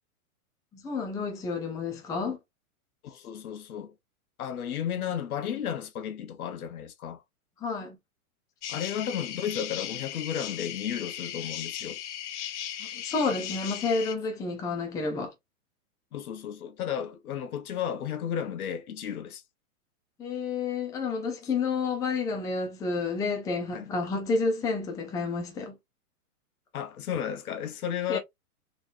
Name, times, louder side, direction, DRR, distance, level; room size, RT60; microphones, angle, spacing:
voice 1, 0.7-2.4 4.9-5.1 7.6-8.0 12.8-15.3 20.2-25.8 28.1-28.2, left 4 dB, 10° left, 0.6 m, -30 dB
voice 2, 3.0-3.9 4.4-7.2 8.7-12.0 13.3-13.4 16.1-19.4 23.7-23.9 26.7-28.2, left 9 dB, 75° left, 1.1 m, -33 dB
sound 1, 8.6-14.2, left 11 dB, 50° left, 0.8 m, -37 dB
4.1 x 3.1 x 2.5 m
hypercardioid pair, 145°, 44 cm